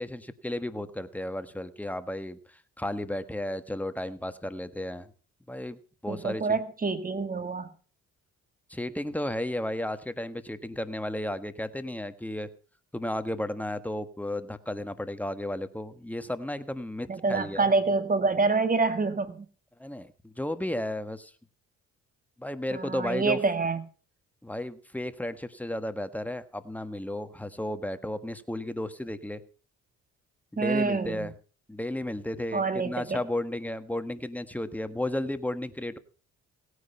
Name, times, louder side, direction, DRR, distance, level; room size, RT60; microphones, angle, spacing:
voice 1, 0.0-5.1 5.5-5.8 6.0-6.4 8.7-12.5 12.9-17.6 19.8-21.3 22.4-23.4 24.4-29.4 30.5-31.3 31.7-36.0, left 1 dB, 5° left, 10 dB, 1.4 m, -33 dB
voice 2, 6.1-7.7 17.1-19.5 22.7-23.8 30.6-31.3 32.5-33.2, right 3 dB, 30° right, 10 dB, 1.9 m, -27 dB
17.0 x 9.7 x 5.7 m, 0.39 s
cardioid pair, 90°, 30 cm